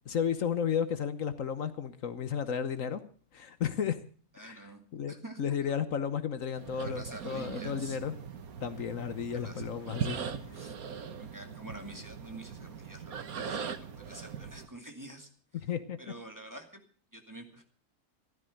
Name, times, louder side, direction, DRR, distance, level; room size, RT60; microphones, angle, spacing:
voice 1, 0.1-3.0 3.3-4.0 4.4-4.6 4.9-8.2 8.6-10.2 10.5-10.6 15.6-16.0, left 7 dB, 65° left, 12 dB, 1.4 m, -33 dB
voice 2, 4.3-5.8 6.8-8.0 9.3-9.8 10.5-10.7 11.2-15.7 16.0-16.8 17.1-17.6, right 1 dB, 15° right, 4 dB, 2.2 m, -48 dB
sound 1, 6.5-14.7, right 7 dB, 85° right, 1.7 m, -40 dB
15.0 x 13.0 x 6.4 m, 0.42 s
omnidirectional pair, 1.5 m